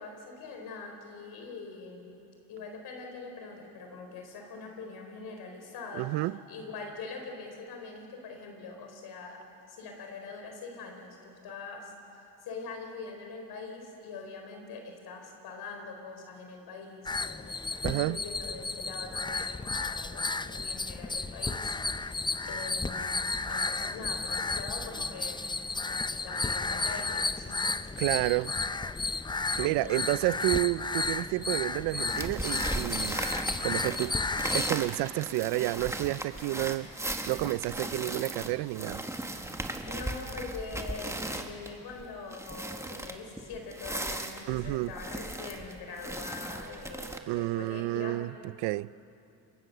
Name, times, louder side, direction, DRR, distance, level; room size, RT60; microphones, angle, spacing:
voice 1, 0.0-2.1 2.5-6.1 6.5-9.4 9.7-25.4 25.8-27.8 28.2-28.5 29.6-30.1 39.8-48.2, left 4 dB, 75° left, 4.4 m, -43 dB
voice 2, 5.9-6.4 17.8-18.2 28.0-28.5 29.6-34.2 34.5-39.1 44.5-44.9 47.3-48.9, right 20 dB, 85° right, 0.6 m, -30 dB
sound 1, 17.1-34.7, left 3 dB, 10° left, 0.5 m, -33 dB
sound 2, 32.1-47.2, right 1 dB, 5° right, 1.7 m, -37 dB
25.0 x 22.5 x 6.8 m
cardioid pair, 90°, 38 cm